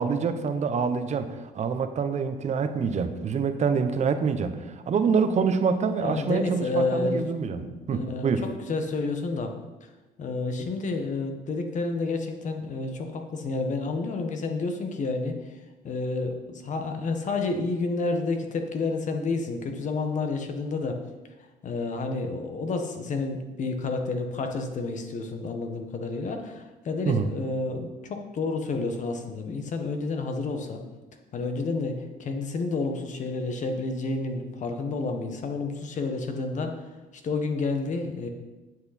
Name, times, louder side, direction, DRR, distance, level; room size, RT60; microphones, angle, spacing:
voice 1, 0.0-8.4 10.6-10.7 27.0-27.3, right 5 dB, 45° right, 9 dB, 0.9 m, -26 dB
voice 2, 6.0-7.2 7.5-9.5 10.2-15.5 15.8-21.0 21.6-30.8 31.3-36.7 37.2-38.3, left 3 dB, 45° left, 5 dB, 1.4 m, -30 dB
9.1 x 7.9 x 4.3 m, 1.1 s
cardioid pair, 110°, 17 cm